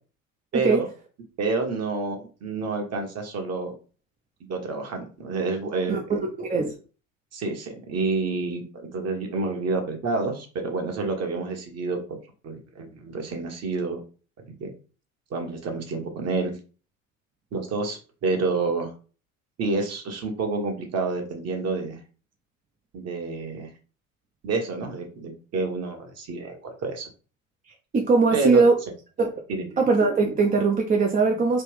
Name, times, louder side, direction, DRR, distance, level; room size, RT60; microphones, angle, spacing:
voice 1, 0.5-0.9 1.4-3.7 4.4-6.0 7.3-8.6 8.9-12.2 12.4-14.0 14.6-14.7 15.3-16.5 17.5-18.9 19.6-22.0 22.9-23.7 24.4-27.1 28.3-28.6 29.5-29.6, right 3 dB, 40° right, 3 dB, 1.2 m, -28 dB
voice 2, 5.9-6.7 27.9-28.7 29.2-29.3 29.8-31.6, right 4 dB, 20° right, 1 dB, 0.6 m, -21 dB
3.3 x 2.5 x 3.3 m, 0.36 s
hypercardioid pair, 75°, 40 cm